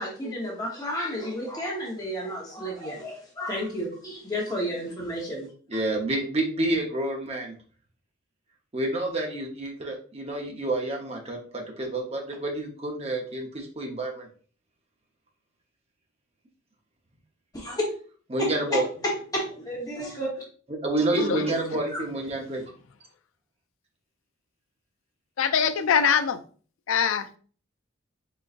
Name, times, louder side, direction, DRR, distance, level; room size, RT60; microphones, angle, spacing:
voice 1, 0.0-5.5 5.7-5.8 17.5-17.8 18.4-20.3, equal, 20° left, -3 dB, 1.1 m, -31 dB
voice 2, 5.7-7.5 8.7-14.3 18.3-18.9 20.7-22.6, right 2 dB, 30° right, 1 dB, 0.8 m, -29 dB
voice 3, 21.1-21.6 25.4-26.4 26.9-27.4, left 7 dB, 75° left, 10 dB, 0.4 m, -23 dB
4.1 x 3.7 x 2.5 m, 0.42 s
head